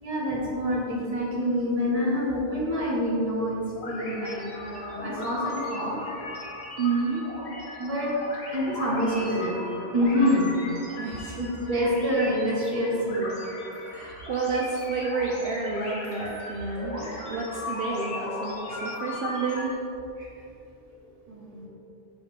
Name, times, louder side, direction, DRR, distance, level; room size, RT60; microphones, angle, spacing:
voice 1, 0.0-6.0 7.8-8.1 8.5-9.6 9.9-10.5 11.4-13.3 18.7-18.8 20.2-20.3 21.3-21.7, equal, 35° right, -4 dB, 1.4 m, -27 dB
Spacial Sci-fi, 3.8-19.7, left 2 dB, 85° left, 1.6 m, -37 dB
voice 2, 6.8-7.2 11.0-11.4 13.9-19.8, right 4 dB, 65° right, -1 dB, 0.8 m, -30 dB
7.0 x 5.8 x 3.3 m, 2.8 s
omnidirectional pair, 1.1 m